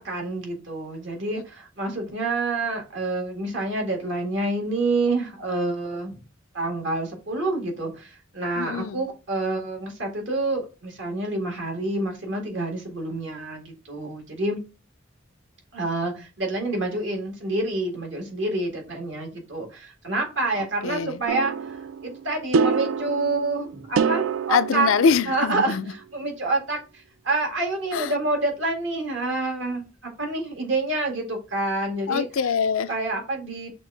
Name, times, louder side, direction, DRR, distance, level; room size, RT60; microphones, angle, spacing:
voice 1, 0.0-6.2 6.5-14.6 15.7-24.9 25.3-32.2 32.9-33.7, right 2 dB, 65° right, 1.8 m, -28 dB
voice 2, 8.6-9.0 20.6-21.2 24.5-25.8 27.9-28.0 32.1-32.9, left 6 dB, 85° left, 0.4 m, -23 dB
sound 1, 21.3-25.8, right 5 dB, 80° right, 0.3 m, -27 dB
6.1 x 2.4 x 3.4 m
head